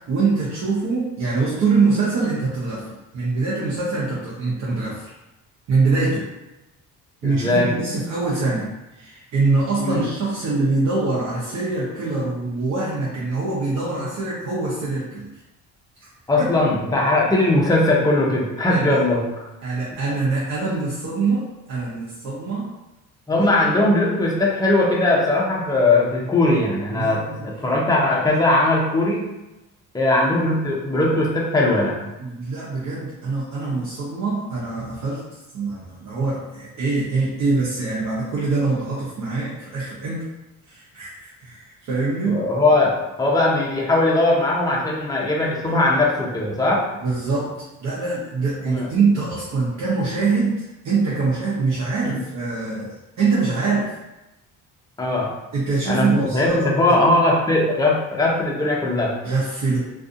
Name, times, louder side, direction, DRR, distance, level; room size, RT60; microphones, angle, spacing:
voice 1, 0.1-5.1 5.7-6.3 7.2-8.7 9.0-15.3 16.0-16.1 16.4-16.5 18.7-19.0 19.6-22.7 23.4-23.5 26.9-27.5 32.2-40.3 40.7-42.4 45.6-45.7 47.0-53.9 55.5-57.0 59.2-59.9, right 3 dB, 55° right, -7 dB, 0.8 m, -24 dB
voice 2, 7.2-7.7 9.8-10.0 16.3-19.2 23.3-29.3 29.9-32.0 42.2-46.8 48.7-48.9 52.0-52.2 55.0-55.3 55.9-56.1 56.3-59.2, left 2 dB, 10° left, -3 dB, 0.6 m, -19 dB
2.5 x 2.4 x 2.5 m, 0.99 s
cardioid pair, 105°, 33 cm